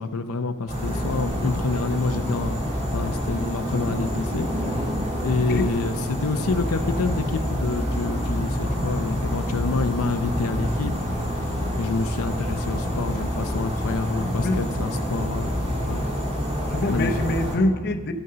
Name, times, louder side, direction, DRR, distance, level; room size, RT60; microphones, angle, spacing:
voice 1, 0.0-4.9 5.2-10.9 11.3-16.1 16.9-17.2, left 3 dB, 85° left, 8 dB, 0.6 m, -28 dB
sound 1, 0.7-17.6, equal, 30° right, 3.0 m, -27 dB
voice 2, 16.7-18.1, left 1 dB, 50° left, 6 dB, 0.8 m, -25 dB
12.0 x 6.6 x 6.7 m, 1.4 s
head